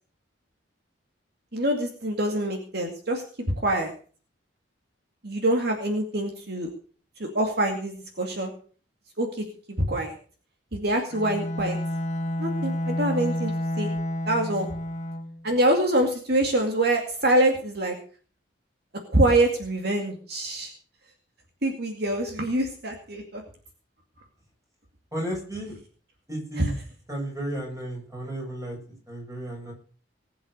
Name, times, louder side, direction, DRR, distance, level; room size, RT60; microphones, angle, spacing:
voice 1, 1.5-3.2 3.6-3.9 5.2-6.7 7.2-8.5 9.2-10.1 10.7-11.8 12.4-13.5 13.8-13.9 14.3-14.7 15.4-17.9 19.1-20.7 21.6-23.4 26.6-26.7, right 1 dB, 55° right, 3 dB, 2.3 m, -25 dB
Bowed string instrument, 11.1-15.4, left 1 dB, 35° left, 1.3 m, -30 dB
voice 2, 25.1-25.7 26.3-26.7 27.1-28.8 29.1-29.7, right 1 dB, 15° right, -1 dB, 8.0 m, -33 dB
20.0 x 8.1 x 6.6 m, 0.42 s
head